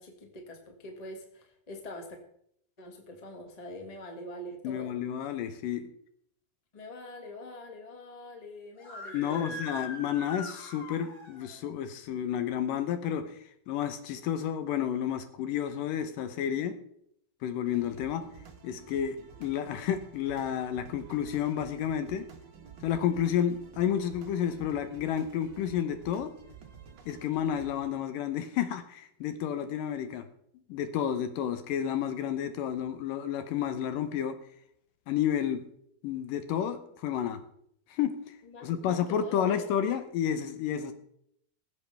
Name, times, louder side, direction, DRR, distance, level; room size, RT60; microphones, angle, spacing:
voice 1, 0.0-2.2 2.8-5.0 6.7-9.6 38.4-39.7, left 1 dB, 25° left, 2 dB, 0.8 m, -44 dB
voice 2, 4.6-5.9 9.1-13.4 13.7-16.7 17.4-18.2 18.6-22.3 22.8-26.3 27.1-30.2 30.7-34.4 35.1-35.6 36.0-37.4 37.9-38.3 38.6-40.9, left 9 dB, 75° left, 9 dB, 2.4 m, -31 dB
Screaming, 8.7-11.5, left 1 dB, 45° left, 3.8 m, -42 dB
sound 1, 17.6-27.9, right 7 dB, 65° right, 1.1 m, -51 dB
21.0 x 8.0 x 3.4 m, 0.70 s
omnidirectional pair, 4.2 m